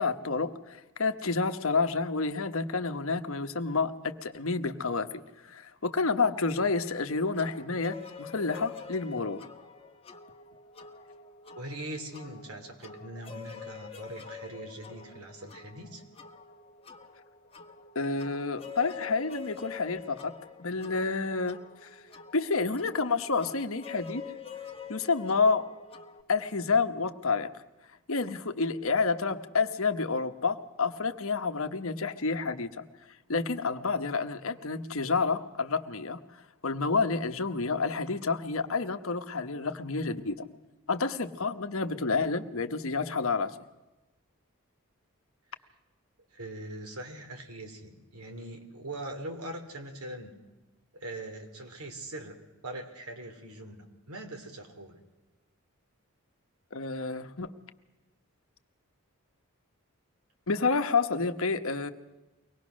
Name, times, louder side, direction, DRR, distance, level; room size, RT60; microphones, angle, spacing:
voice 1, 0.0-9.5 17.9-20.3 20.6-21.9 22.3-24.2 24.9-25.7 26.3-27.5 28.1-32.8 33.3-36.2 36.6-40.4 40.9-43.6 56.7-57.5 60.5-61.9, left 4 dB, 70° left, 8 dB, 1.1 m, -29 dB
sound 1, 7.3-26.2, left 6 dB, 25° left, 1.2 m, -47 dB
voice 2, 11.6-16.0 46.3-50.4 50.9-52.4 52.6-55.0, right 1 dB, 85° right, 4 dB, 3.1 m, -42 dB
24.0 x 19.0 x 6.4 m, 1.1 s
head